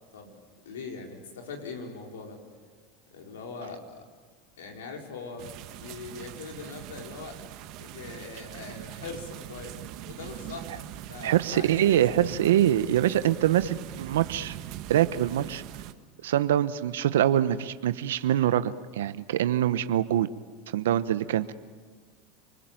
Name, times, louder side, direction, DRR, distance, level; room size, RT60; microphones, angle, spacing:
voice 1, 0.6-2.4 3.1-4.1 4.6-7.4 7.8-9.8 10.1-12.2, left 4 dB, 90° left, 2 dB, 4.7 m, -41 dB
sound 1, 5.4-15.9, right 12 dB, 60° right, 1.5 m, -42 dB
voice 2, 11.2-14.6 14.9-15.6 16.2-20.3 20.7-21.5, right 11 dB, 85° right, 13 dB, 0.9 m, -24 dB
29.0 x 20.5 x 9.1 m, 1.5 s
hypercardioid pair, 100°, 0 cm